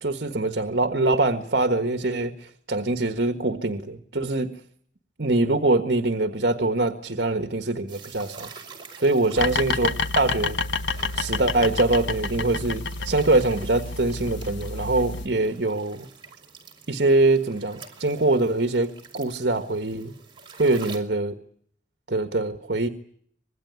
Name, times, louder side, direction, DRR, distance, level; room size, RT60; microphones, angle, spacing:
voice 1, 0.0-4.5 5.2-8.5 9.0-10.6 11.1-16.1 16.9-18.9 19.1-20.1 20.6-21.3 22.1-22.9, right 2 dB, 60° right, 8 dB, 1.5 m, -23 dB
sound 1, 7.9-21.0, right 5 dB, 25° right, 4.7 m, -47 dB
sound 2, 9.4-15.3, left 3 dB, 85° left, 1.1 m, -29 dB
25.5 x 21.0 x 9.6 m, 0.64 s
head